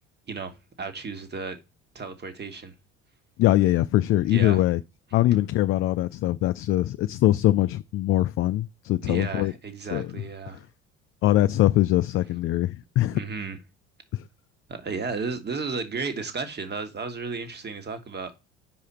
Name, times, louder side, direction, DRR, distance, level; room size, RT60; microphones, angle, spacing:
voice 1, 0.3-1.6 1.9-2.7 4.3-4.6 9.0-10.6 13.1-13.6 14.7-18.4, right 4 dB, 30° right, 1.7 m, -33 dB
voice 2, 3.4-4.8 5.1-9.5 9.9-10.1 10.5-10.6 11.2-13.2 14.1-14.2, left 14 dB, 40° left, 0.4 m, -22 dB
7.8 x 4.9 x 4.2 m
hypercardioid pair, 70°, 34 cm